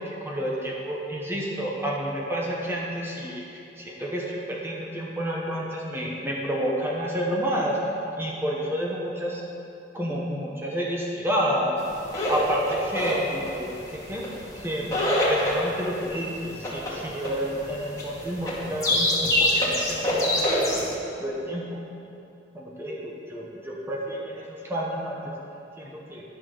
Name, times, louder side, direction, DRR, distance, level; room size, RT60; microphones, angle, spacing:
voice 1, 0.0-7.8 8.2-9.4 9.9-11.8 12.3-14.2 14.5-14.9 15.3-20.9 21.2-21.8 22.5-25.3 25.8-26.2, equal, 15° right, -3 dB, 1.1 m, -30 dB
sound 1, 11.9-20.9, left 1 dB, 20° left, 2.2 m, -25 dB
11.0 x 5.9 x 6.4 m, 2.8 s
head